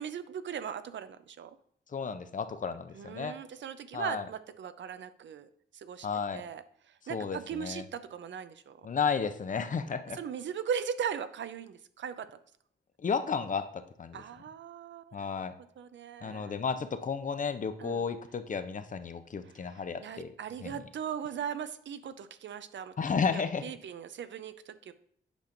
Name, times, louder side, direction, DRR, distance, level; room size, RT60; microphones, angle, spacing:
voice 1, 0.0-1.5 2.9-6.1 6.3-6.6 7.1-8.8 10.2-12.3 14.1-15.2 15.8-16.5 17.8-18.0 19.6-22.9 23.3-24.9, right 8 dB, 70° right, 12 dB, 0.5 m, -39 dB
voice 2, 1.9-3.4 3.9-4.3 6.0-6.5 7.1-7.8 8.8-10.2 13.0-14.2 15.1-15.5 16.2-20.3 20.6-20.7 23.0-23.7, left 5 dB, 40° left, 10 dB, 0.5 m, -33 dB
8.2 x 5.1 x 2.5 m, 0.65 s
cardioid pair, 90°, 20 cm